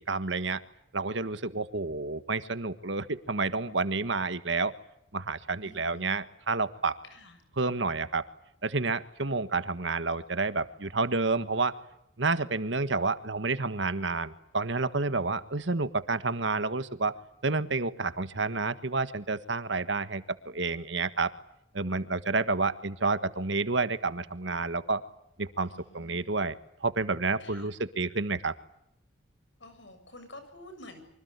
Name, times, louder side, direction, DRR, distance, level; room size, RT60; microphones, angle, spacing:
voice 1, 0.1-0.6 0.9-4.7 5.1-7.0 7.6-8.3 8.6-11.8 12.2-21.3 21.7-25.0 25.4-28.6, right 3 dB, 65° right, 12 dB, 1.5 m, -30 dB
voice 2, 5.6-6.1 7.0-7.4 25.6-26.2 27.4-27.7 29.6-31.0, left 1 dB, 65° left, 9 dB, 7.3 m, -49 dB
26.5 x 25.5 x 8.2 m, 0.78 s
head